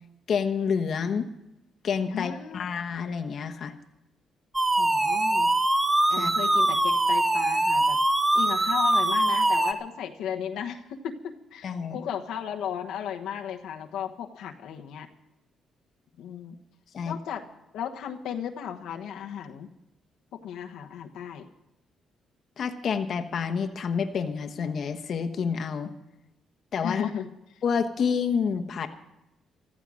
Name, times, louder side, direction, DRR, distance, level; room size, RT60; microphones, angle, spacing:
voice 1, 0.3-1.2 1.8-3.7 6.2-6.3 11.6-12.0 16.9-17.2 22.6-25.9 26.7-27.1 27.6-28.9, left 6 dB, 60° left, 5 dB, 1.1 m, -28 dB
voice 2, 2.1-2.7 4.8-5.5 6.1-8.0 8.3-15.1 16.2-16.6 17.0-17.5 17.7-19.7 20.3-21.5 26.8-27.6, left 8 dB, 85° left, 3 dB, 1.2 m, -35 dB
sound 1, 4.5-9.7, right 2 dB, 15° right, 1.2 m, -23 dB
15.0 x 13.5 x 6.3 m, 0.89 s
cardioid pair, 90°, 0 cm